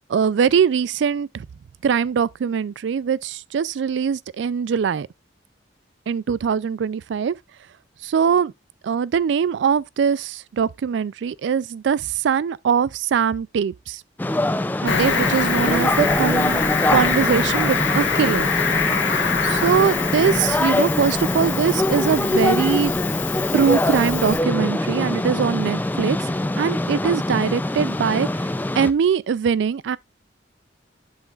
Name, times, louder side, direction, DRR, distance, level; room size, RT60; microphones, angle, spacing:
voice 1, 0.1-1.5 1.8-5.1 6.1-7.4 8.0-8.5 8.8-14.0 14.8-16.6 16.9-18.5 19.4-22.9 23.5-28.5 28.8-30.0, right 7 dB, 70° right, 0.3 m, -22 dB
sound 1, 14.2-28.9, left 1 dB, 10° left, 0.4 m, -23 dB
Cricket, 14.8-24.4, left 5 dB, 80° left, 1.4 m, -25 dB
10.5 x 5.6 x 2.4 m
head